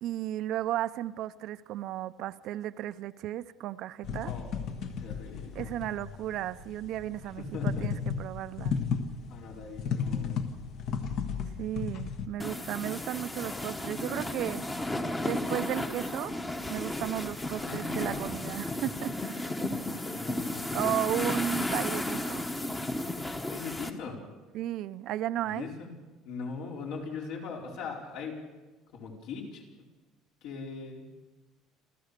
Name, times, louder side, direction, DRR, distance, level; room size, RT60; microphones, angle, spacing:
voice 1, 0.0-4.3 5.5-8.8 11.6-14.6 15.2-16.3 16.7-19.4 20.7-22.5 24.5-25.7, right 13 dB, 55° right, 13 dB, 0.6 m, -34 dB
sound 1, 4.0-12.3, left 6 dB, 55° left, 1.4 m, -34 dB
voice 2, 4.2-4.6 5.0-5.7 7.4-7.9 9.3-10.4 17.6-18.2 19.2-19.7 20.0-20.8 23.5-24.2 25.4-25.9 26.2-28.4 28.9-29.6 30.4-31.1, left 4 dB, 70° left, 0 dB, 4.7 m, -40 dB
sound 2, 12.4-23.9, left 1 dB, 10° left, 1.1 m, -34 dB
28.5 x 14.0 x 6.7 m, 1.2 s
cardioid pair, 165°, 0 cm